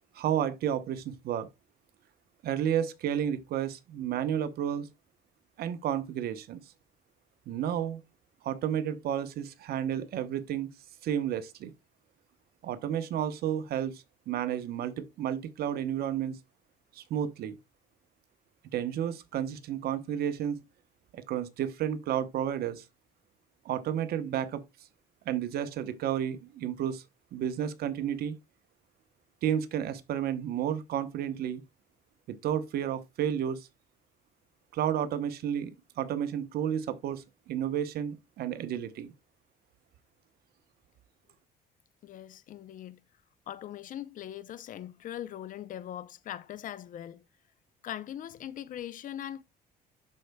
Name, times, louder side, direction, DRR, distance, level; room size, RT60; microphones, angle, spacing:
voice 1, 0.1-1.5 2.4-4.9 5.6-6.6 7.5-8.0 8.4-10.7 11.0-11.7 12.6-16.4 16.9-17.6 18.7-20.6 21.1-22.8 23.6-24.6 25.3-27.0 27.3-28.4 29.4-31.6 32.3-33.7 34.7-35.7 36.0-39.1, right 9 dB, 65° right, 0.9 m, -31 dB
voice 2, 42.0-43.0 43.5-47.2 47.8-49.4, left 11 dB, 50° left, 0.5 m, -41 dB
12.0 x 4.5 x 2.2 m
cardioid pair, 110°, 17 cm